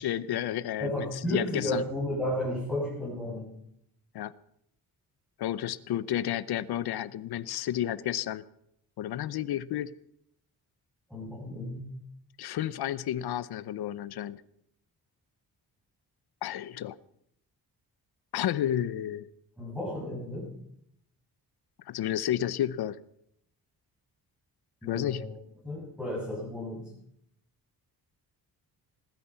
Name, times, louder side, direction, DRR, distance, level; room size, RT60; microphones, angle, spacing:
voice 1, 0.0-1.8 4.1-4.3 5.4-8.4 9.0-9.9 12.4-14.4 16.4-17.0 18.3-19.3 21.9-23.0 24.9-25.3, left 11 dB, 85° left, 17 dB, 0.8 m, -31 dB
voice 2, 0.8-3.5 7.5-7.6 11.1-11.9 19.6-20.5 24.8-25.3 25.6-26.9, left 1 dB, ahead, -8 dB, 7.0 m, -33 dB
20.0 x 13.0 x 5.7 m, 0.74 s
wide cardioid pair, 170°, 37 cm